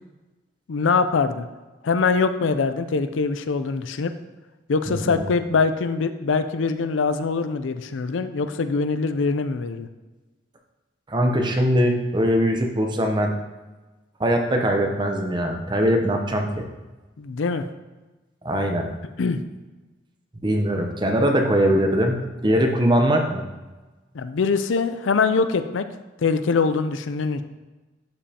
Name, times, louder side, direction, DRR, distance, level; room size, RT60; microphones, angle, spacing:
voice 1, 0.7-1.5 1.8-4.1 4.7-9.9 17.2-17.7 19.2-19.4 24.1-25.8 26.2-27.4, left 4 dB, 85° left, 10 dB, 0.5 m, -23 dB
voice 2, 4.9-5.2 11.1-13.3 14.2-16.7 18.4-18.9 20.4-23.4, equal, 25° right, 3 dB, 0.8 m, -21 dB
11.5 x 5.2 x 2.9 m, 1.2 s
head